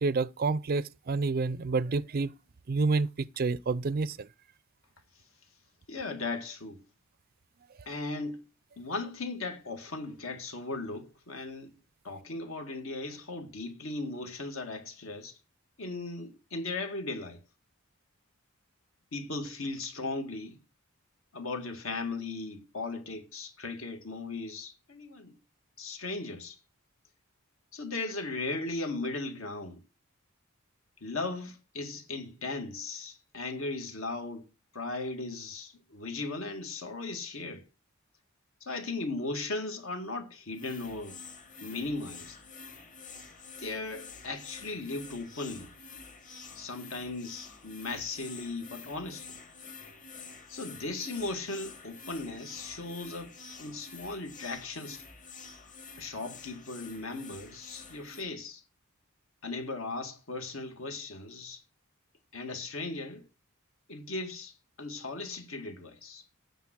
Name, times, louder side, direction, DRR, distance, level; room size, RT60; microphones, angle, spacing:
voice 1, 0.0-2.3 2.7-3.1 3.4-4.3, right 3 dB, 45° right, 0.4 m, -28 dB
voice 2, 5.9-6.8 7.9-8.4 8.8-11.8 12.0-15.4 15.8-17.4 19.1-20.6 21.3-25.4 25.8-26.6 27.7-29.8 31.0-34.5 34.7-37.6 38.6-41.2 41.6-42.4 43.6-45.7 46.6-49.4 50.5-53.3 53.6-55.0 56.0-58.6 59.4-61.6 62.3-63.3 63.9-66.2, left 3 dB, 65° left, 2.1 m, -37 dB
sound 1, 40.5-58.2, left 4 dB, 40° left, 2.3 m, -48 dB
9.3 x 7.0 x 6.1 m
head